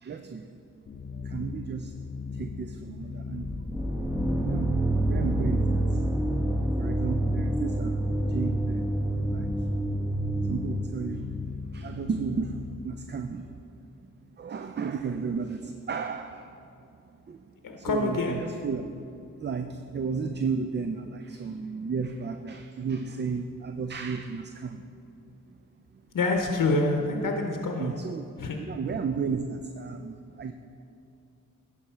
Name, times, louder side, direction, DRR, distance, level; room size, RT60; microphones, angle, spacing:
voice 1, 0.0-0.6 1.1-1.9 2.3-3.5 4.4-4.7 5.1-6.0 6.8-8.9 9.3-9.5 10.4-11.3 11.7-13.5 14.4-16.5 17.3-17.4 17.8-18.9 19.4-24.8 27.8-28.2 28.7-30.5, right 5 dB, 35° right, 7 dB, 0.4 m, -33 dB
sound 1, 0.9-13.0, left 4 dB, 30° left, 0.4 m, -39 dB
sound 2, 3.4-11.3, right 1 dB, 10° right, 1.2 m, -28 dB
voice 2, 17.6-18.4 26.1-27.9 28.4-28.6, left 2 dB, 75° left, 3 dB, 0.7 m, -26 dB
11.0 x 4.9 x 4.4 m, 2.6 s
cardioid pair, 40°, 32 cm